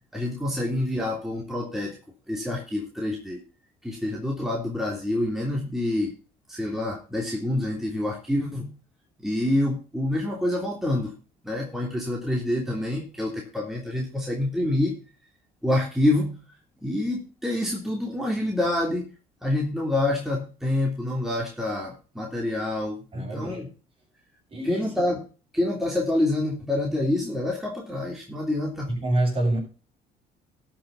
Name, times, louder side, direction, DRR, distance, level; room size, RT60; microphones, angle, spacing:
voice 1, 0.1-2.0 2.3-3.4 3.8-6.1 6.5-8.8 9.2-11.1 11.4-15.0 15.6-16.4 16.8-19.1 19.4-23.7 24.6-25.2 25.5-29.0, left 1 dB, ahead, -2 dB, 3.2 m, -27 dB
voice 2, 23.1-23.6 24.5-24.9 28.9-29.6, right 1 dB, 35° right, 1 dB, 7.1 m, -26 dB
13.0 x 6.5 x 5.5 m, 0.35 s
cardioid pair, 110°, 17 cm